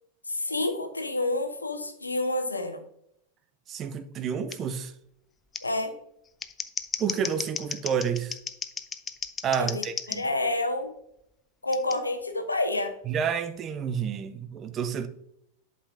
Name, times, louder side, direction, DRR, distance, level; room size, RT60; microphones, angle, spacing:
voice 1, 0.3-2.8 5.6-5.9 9.6-10.9 11.6-12.9, left 2 dB, 80° left, 1.0 m, -29 dB
voice 2, 3.7-4.9 7.0-8.4 9.4-10.3 13.1-15.1, right 7 dB, 30° right, 0.7 m, -29 dB
Scissors, 4.5-4.6 5.5-5.6 6.3-10.2 11.7-12.0, left 6 dB, 20° left, 0.5 m, -34 dB
11.0 x 5.4 x 2.6 m
figure-of-eight pair, 90°, 0 cm